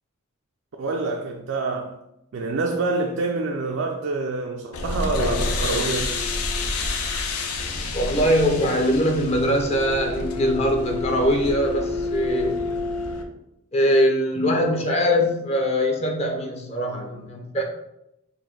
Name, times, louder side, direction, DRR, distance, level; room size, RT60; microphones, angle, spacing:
voice 1, 0.8-2.0 2.3-6.1 14.3-14.4, right 3 dB, 55° right, 0.4 m, -26 dB
sound 1, 4.7-13.2, left 3 dB, 85° left, 0.6 m, -28 dB
voice 2, 7.9-12.6 13.7-17.6, equal, 30° left, 0.5 m, -22 dB
4.1 x 2.6 x 4.5 m
head